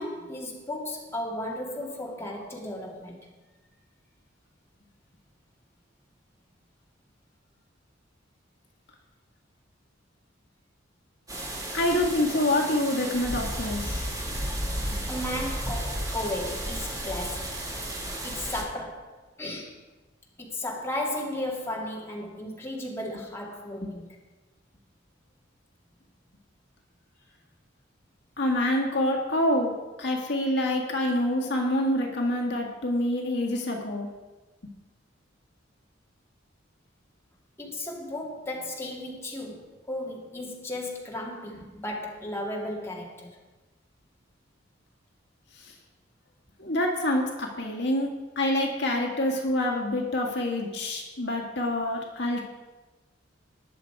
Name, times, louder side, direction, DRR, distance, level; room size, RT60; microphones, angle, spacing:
voice 1, 0.0-3.3 14.9-17.7 18.2-19.1 19.4-19.8 20.4-24.2 37.6-43.4, left 1 dB, 15° left, -2 dB, 2.0 m, -35 dB
sound 1, 11.3-18.6, right 1 dB, 20° right, 2.0 m, -33 dB
voice 2, 11.7-14.1 28.4-34.1 46.6-48.1 48.4-52.4, left 1 dB, 60° left, 0 dB, 1.8 m, -26 dB
20.0 x 6.8 x 4.7 m, 1.2 s
head